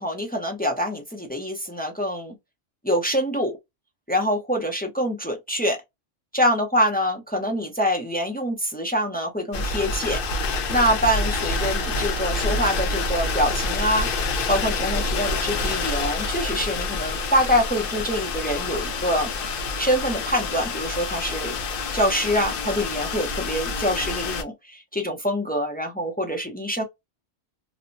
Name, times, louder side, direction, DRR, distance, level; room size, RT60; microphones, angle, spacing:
voice 1, 0.0-2.3 2.8-3.5 4.1-5.8 6.3-10.2 10.7-19.3 19.8-21.6 21.9-26.8, equal, 10° left, 0.4 m, -25 dB
sound 1, 9.5-24.4, left 3 dB, 60° left, 0.7 m, -27 dB
2.7 x 2.1 x 2.5 m
omnidirectional pair, 1.2 m